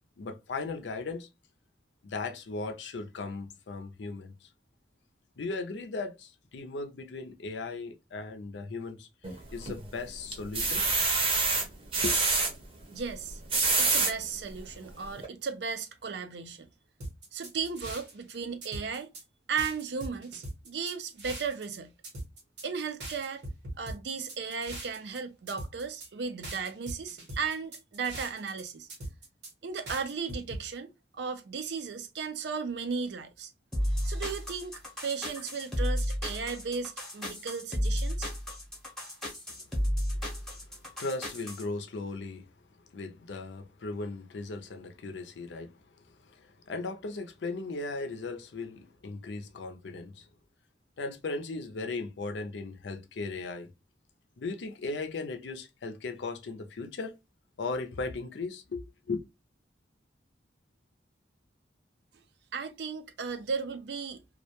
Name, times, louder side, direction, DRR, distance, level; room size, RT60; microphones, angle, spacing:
voice 1, 0.2-1.3 2.0-4.5 5.4-10.8 12.0-12.2 40.2-40.3 40.7-42.5 42.9-45.8 46.0-50.3 51.0-53.7 54.4-57.1 57.6-59.2, left 3 dB, 80° left, 0.5 m, -37 dB
sound 1, 9.2-9.8 10.3-12.5 13.3-14.1 14.7-14.8 15.2-15.3, right 3 dB, 30° right, 0.6 m, -26 dB
voice 2, 12.9-13.4 13.8-16.7 17.3-19.1 19.5-21.9 22.6-23.4 23.8-28.9 29.6-33.5 34.0-34.7 35.0-38.3 62.5-64.2, right 5 dB, 70° right, 0.4 m, -35 dB
sound 2, 17.0-18.3 18.6-19.2 19.6-21.8 22.0-22.7 23.0-25.2 25.5-26.1 26.4-28.6 28.9-29.5 29.9-30.6, right 1 dB, 85° right, 1.1 m, -41 dB
sound 3, 33.7-41.6, equal, ahead, 0.7 m, -32 dB
2.3 x 2.1 x 2.7 m
head